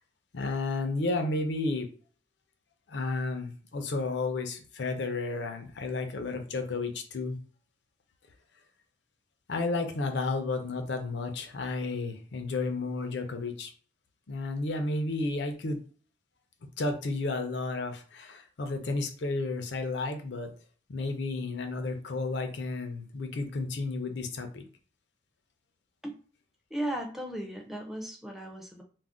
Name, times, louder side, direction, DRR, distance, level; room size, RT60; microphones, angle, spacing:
voice 1, 0.3-1.9 2.9-7.4 9.5-13.7 14.3-15.8 16.8-20.5 20.9-24.6, left 3 dB, 70° left, 5 dB, 0.5 m, -32 dB
voice 2, 26.7-28.8, right 1 dB, ahead, 2 dB, 0.4 m, -36 dB
2.4 x 2.0 x 3.5 m, 0.42 s
head